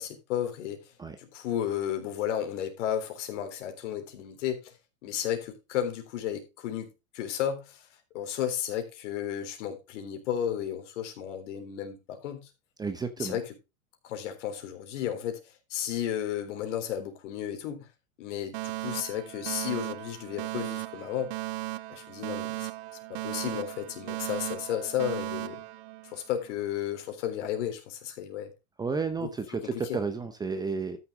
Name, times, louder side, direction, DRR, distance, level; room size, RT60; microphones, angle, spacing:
voice 1, 0.0-0.8 1.2-4.8 5.0-7.9 8.1-12.5 13.2-13.5 14.0-15.4 15.7-17.9 18.2-21.3 21.9-22.7 23.1-25.6 26.0-28.5 29.2-30.0, left 10 dB, 60° left, 3.8 m, -33 dB
voice 2, 12.8-13.4 28.8-31.0, right 4 dB, 10° right, 0.8 m, -32 dB
Alarm, 18.5-26.6, right 17 dB, 50° right, 0.7 m, -37 dB
13.5 x 6.9 x 3.7 m
hypercardioid pair, 135°, 41 cm